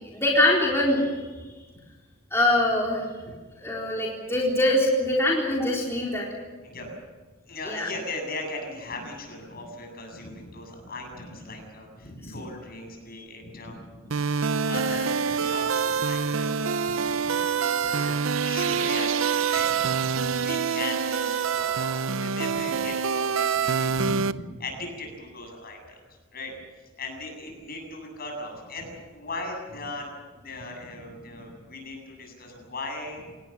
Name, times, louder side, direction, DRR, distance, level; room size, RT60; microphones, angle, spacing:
voice 1, 0.1-1.3 2.3-3.1 3.6-6.3 7.7-7.9 13.2-13.3 17.9-18.1, left 1 dB, 15° left, -4 dB, 4.1 m, -23 dB
voice 2, 7.5-14.1 14.5-16.6 16.9-18.2 18.4-26.0 26.3-26.5 27.0-30.1 30.4-33.2, left 2 dB, 45° left, 3 dB, 7.9 m, -38 dB
sound 1, 14.1-24.3, right 6 dB, 70° right, 0.7 m, -26 dB
27.5 x 19.0 x 7.5 m, 1.3 s
head